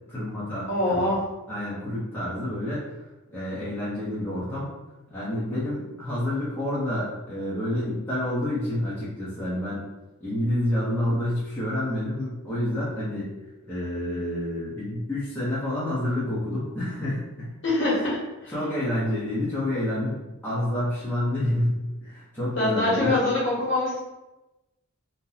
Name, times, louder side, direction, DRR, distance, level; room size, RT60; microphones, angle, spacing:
voice 1, 0.1-1.1 1.5-2.9 3.3-4.7 5.1-9.9 10.2-13.3 13.7-17.5 17.8-18.1 18.5-23.2, left 1 dB, 10° left, -11 dB, 0.8 m, -28 dB
voice 2, 0.7-1.2 17.6-18.2 22.6-24.0, left 2 dB, 55° left, -8 dB, 1.5 m, -24 dB
2.8 x 2.2 x 3.9 m, 1.0 s
head